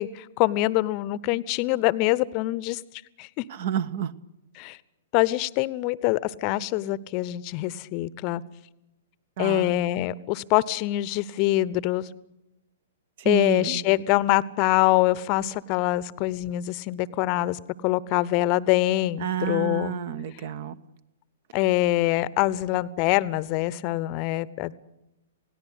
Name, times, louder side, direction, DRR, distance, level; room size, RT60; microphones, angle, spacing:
voice 1, 0.0-2.8 3.2-3.5 4.5-4.8 5.1-8.4 9.4-12.1 13.2-20.0 21.5-24.7, left 16 dB, 35° left, 19 dB, 0.9 m, -24 dB
voice 2, 3.5-4.1 9.4-9.8 13.2-13.8 19.2-20.8, right 9 dB, 45° right, 16 dB, 1.1 m, -29 dB
27.5 x 18.0 x 8.1 m, 0.93 s
figure-of-eight pair, 110°, 0 cm